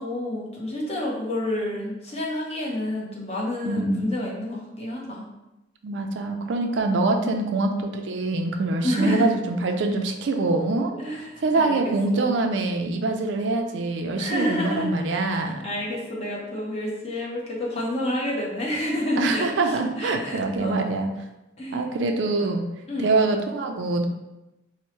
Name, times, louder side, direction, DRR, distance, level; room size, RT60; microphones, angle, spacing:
voice 1, 0.0-5.2 6.5-6.7 7.2-7.5 8.8-9.3 10.9-12.3 14.2-20.9 21.6-21.8 22.4-23.1, left 1 dB, 35° left, -4 dB, 0.8 m, -30 dB
voice 2, 3.6-4.1 5.8-15.6 19.2-21.1 21.7-22.6 23.0-24.1, right 3 dB, 80° right, 4 dB, 0.4 m, -24 dB
4.3 x 2.1 x 3.1 m, 0.98 s
head